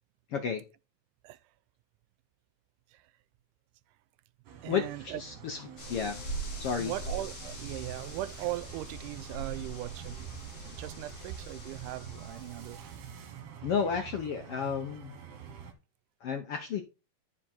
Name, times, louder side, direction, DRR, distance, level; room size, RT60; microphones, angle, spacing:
voice 1, 0.3-0.6 4.6-5.6 5.9-6.2 6.6-6.9 13.6-15.1 16.2-16.8, left 7 dB, 75° left, 1.3 m, -32 dB
sound 1, 4.4-15.7, right 7 dB, 60° right, 2.2 m, -47 dB
voice 2, 4.6-5.2 6.8-13.0, right 16 dB, 85° right, 2.1 m, -39 dB
sound 2, 5.8-13.3, right 2 dB, 30° left, 2.2 m, -42 dB
10.0 x 5.1 x 4.3 m
omnidirectional pair, 3.6 m